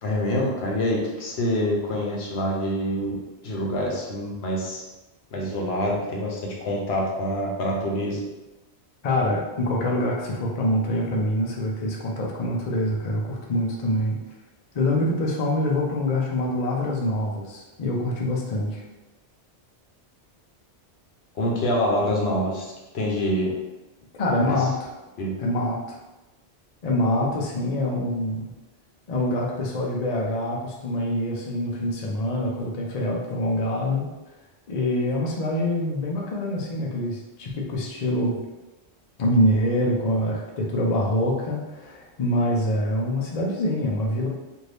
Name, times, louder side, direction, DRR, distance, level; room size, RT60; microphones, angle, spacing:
voice 1, 0.0-3.2 3.4-4.9 5.3-8.2 21.3-23.5 24.4-24.7 25.2-25.3, equal, 75° left, -2 dB, 1.0 m, -26 dB
voice 2, 9.0-14.2 14.7-18.8 24.1-24.9 25.4-26.0 26.8-28.5 29.1-34.1 34.7-38.4 39.2-44.3, left 1 dB, 45° left, -2 dB, 0.5 m, -25 dB
2.7 x 2.6 x 3.2 m, 1.1 s
omnidirectional pair, 1.1 m